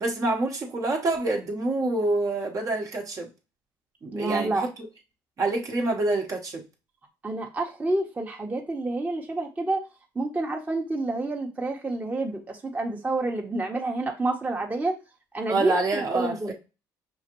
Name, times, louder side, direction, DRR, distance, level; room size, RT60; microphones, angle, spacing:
voice 1, 0.0-3.3 4.0-4.7 5.4-6.6 15.5-16.5, right 2 dB, 40° right, 1 dB, 1.0 m, -27 dB
voice 2, 4.1-4.6 7.2-9.8 10.1-14.9 15.3-16.5, right 2 dB, 20° right, 1 dB, 0.9 m, -29 dB
5.7 x 2.4 x 3.0 m, 0.30 s
supercardioid pair, 85°, 9 cm